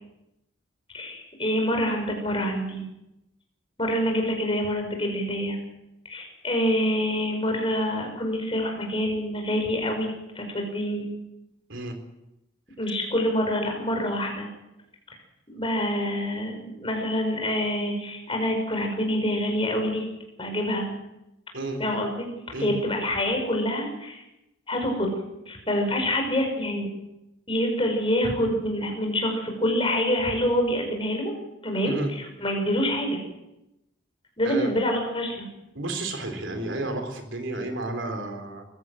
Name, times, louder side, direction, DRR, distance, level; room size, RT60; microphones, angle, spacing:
voice 1, 0.9-2.9 3.8-5.6 6.1-11.1 12.8-14.5 15.5-20.0 20.4-20.9 21.8-22.3 22.6-24.2 24.7-25.1 25.5-26.9 27.5-31.3 31.6-33.2 34.4-35.5, equal, 25° left, 2 dB, 5.4 m, -26 dB
voice 2, 35.7-38.6, right 2 dB, 65° right, 6 dB, 3.6 m, -32 dB
22.0 x 15.5 x 7.7 m, 0.91 s
head